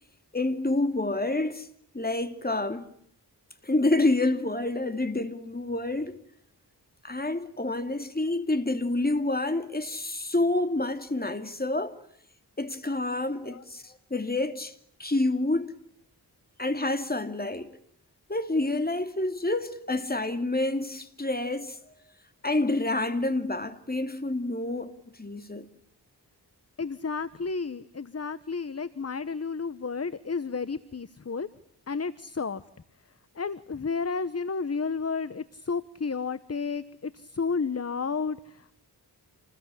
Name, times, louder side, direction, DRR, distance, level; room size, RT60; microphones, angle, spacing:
voice 1, 0.3-1.7 1.9-2.9 3.6-6.2 7.0-12.0 12.6-14.7 15.0-15.7 16.6-17.8 18.3-21.8 22.4-25.7, left 2 dB, 25° left, 2.7 m, -28 dB
voice 2, 26.8-31.5 31.9-32.6 33.3-38.8, left 5 dB, 40° left, 1.1 m, -32 dB
28.5 x 20.5 x 9.9 m
wide cardioid pair, 75°, 40 cm